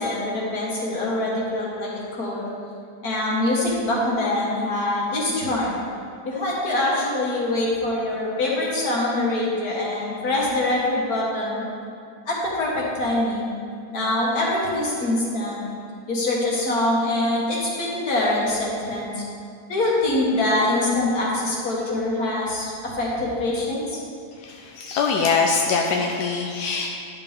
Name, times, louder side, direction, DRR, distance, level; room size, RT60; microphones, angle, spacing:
voice 1, 0.0-2.5 3.0-5.8 6.3-11.6 12.3-13.5 13.9-15.6 16.1-19.2 19.7-24.0, left 2 dB, 65° left, -5 dB, 2.3 m, -24 dB
voice 2, 24.4-26.9, left 5 dB, 90° left, 1 dB, 1.2 m, -23 dB
11.5 x 6.8 x 3.5 m, 2.4 s
omnidirectional pair, 1.7 m